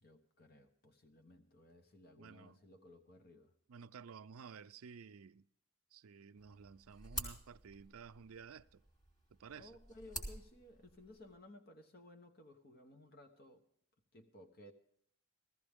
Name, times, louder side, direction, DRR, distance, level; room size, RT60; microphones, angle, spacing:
voice 1, 0.0-3.5 9.5-13.6 14.1-14.7, left 1 dB, 45° left, 1.0 m, -58 dB
voice 2, 2.2-2.6 3.7-5.5 5.9-8.8 9.4-9.7, right 6 dB, 75° right, 0.5 m, -53 dB
sound 1, 6.4-11.4, right 1 dB, 20° left, 2.8 m, -49 dB
15.5 x 15.0 x 3.6 m
head